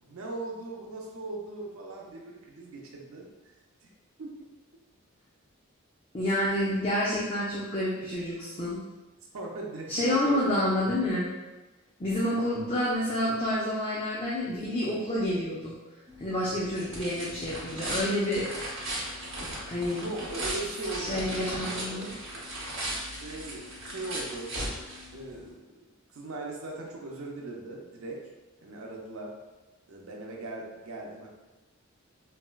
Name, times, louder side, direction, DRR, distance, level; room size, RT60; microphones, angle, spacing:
voice 1, 0.0-3.5 3.8-3.9 4.2-4.3 9.3-10.4 19.9-22.1 23.2-24.5 25.1-25.7 26.1-28.2 28.6-29.3 29.9-31.3, right 2 dB, 85° right, -1 dB, 0.5 m, -39 dB
voice 2, 6.1-8.8 9.9-11.3 12.0-15.8 16.2-18.5 19.7-20.1 21.0-22.1, left 1 dB, 25° left, -7 dB, 0.4 m, -28 dB
sound 1, 16.1-25.5, right 1 dB, 60° right, 1.0 m, -37 dB
4.0 x 2.1 x 2.2 m, 1.1 s
head